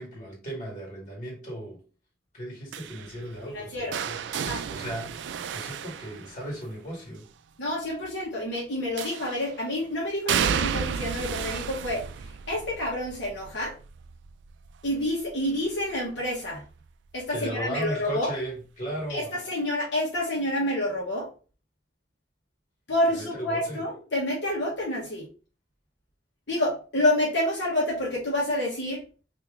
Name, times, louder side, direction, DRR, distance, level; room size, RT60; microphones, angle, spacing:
voice 1, 0.0-1.8 2.3-4.2 4.7-7.3 17.3-19.3 23.1-23.8, equal, 45° left, 2.0 m, -36 dB
sound 1, 2.7-6.8 9.0-9.6 10.3-16.1 16.4-16.8 18.1-18.2, right 7 dB, 80° right, 0.3 m, -33 dB
voice 2, 3.5-4.0 4.3-4.6 7.6-12.0 12.5-13.7 14.8-16.6 17.1-18.3 19.1-21.3 22.9-25.2 26.5-29.0, left 1 dB, 80° left, 1.2 m, -28 dB
3.0 x 2.8 x 3.6 m
head